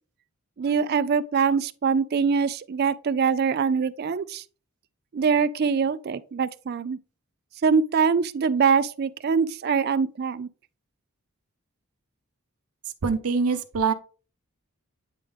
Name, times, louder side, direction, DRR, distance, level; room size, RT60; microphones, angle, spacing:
voice 1, 0.6-4.4 5.1-7.0 7.6-10.5, right 5 dB, 45° right, 0.3 m, -23 dB
voice 2, 13.0-13.9, right 5 dB, 85° right, 0.7 m, -24 dB
9.0 x 3.5 x 3.4 m
head